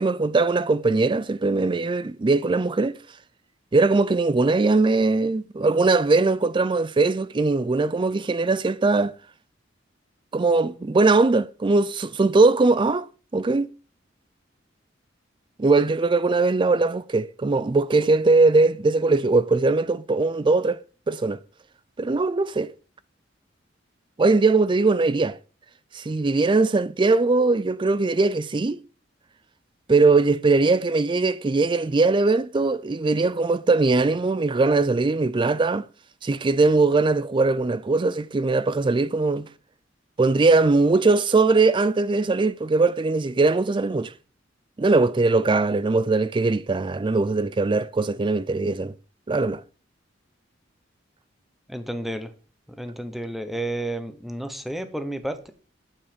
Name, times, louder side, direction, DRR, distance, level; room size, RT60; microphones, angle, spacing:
voice 1, 0.0-3.0 3.7-9.1 10.3-13.1 13.3-13.7 15.6-20.8 21.1-21.4 22.0-22.7 24.2-25.4 25.9-28.8 29.9-35.8 36.2-39.5 40.2-44.1 44.8-48.9 49.3-49.6, right 3 dB, 25° right, 0.4 m, -20 dB
voice 2, 51.7-52.3 52.8-55.5, right 1 dB, ahead, 1.0 m, -31 dB
8.8 x 7.1 x 5.1 m
head